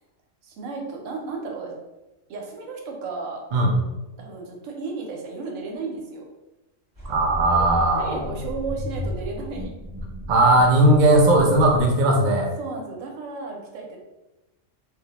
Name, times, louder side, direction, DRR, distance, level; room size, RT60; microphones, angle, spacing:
voice 1, 0.4-1.8 2.3-3.4 4.2-6.2 7.9-9.7 10.4-10.6 12.0-12.2 12.6-14.0, right 4 dB, 85° right, 0 dB, 1.0 m, -34 dB
scaryscape underyourskin, 7.0-11.9, equal, 20° right, 0.7 m, -34 dB
voice 2, 7.1-8.2 10.3-12.5, right 1 dB, 65° right, 0 dB, 0.4 m, -17 dB
2.3 x 2.0 x 2.8 m, 1.0 s
omnidirectional pair, 1.3 m